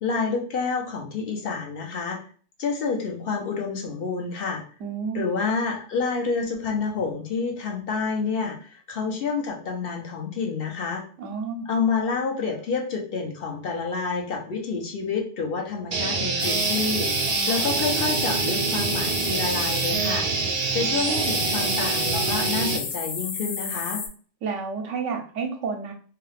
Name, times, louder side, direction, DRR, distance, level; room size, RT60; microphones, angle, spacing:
voice 1, 0.0-2.2 2.6-4.6 5.1-11.0 11.7-20.2 20.7-24.0, left 5 dB, 55° left, 1 dB, 0.9 m, -28 dB
voice 2, 4.8-5.3 11.2-11.7 17.4-17.6 24.4-25.9, right 5 dB, 80° right, 3 dB, 0.9 m, -30 dB
sound 1, 15.9-22.8, right 4 dB, 60° right, 0.6 m, -25 dB
sound 2, 16.4-24.1, left 5 dB, 80° left, 0.9 m, -33 dB
2.7 x 2.3 x 3.3 m, 0.42 s
omnidirectional pair, 1.2 m